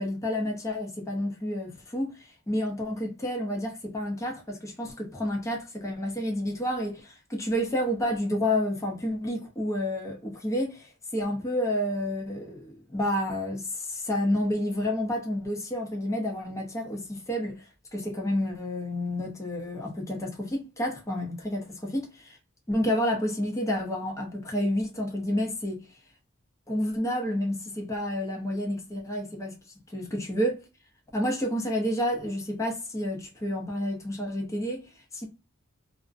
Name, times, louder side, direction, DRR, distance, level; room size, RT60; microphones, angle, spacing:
voice 1, 0.0-22.4 22.7-26.0 26.7-29.6 29.9-30.7 31.1-35.3, left 1 dB, 15° left, 0.6 m, -30 dB
2.5 x 2.1 x 2.4 m
head